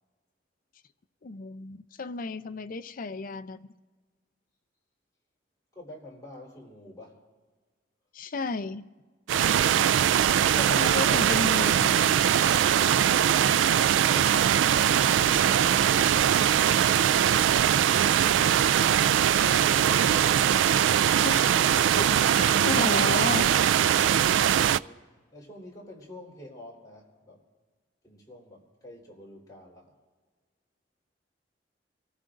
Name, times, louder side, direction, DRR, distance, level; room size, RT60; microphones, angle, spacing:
voice 1, 1.2-3.7 8.1-8.8 10.6-12.3 21.2-21.6 22.0-23.5, left 4 dB, 50° left, 0.5 m, -33 dB
voice 2, 2.4-2.7 5.7-7.3 13.8-14.4 15.2-16.6 24.3-27.4 28.0-30.0, left 1 dB, 20° left, 3.7 m, -48 dB
sound 1, 9.3-24.8, right 9 dB, 90° right, 0.3 m, -22 dB
25.5 x 15.0 x 2.6 m
head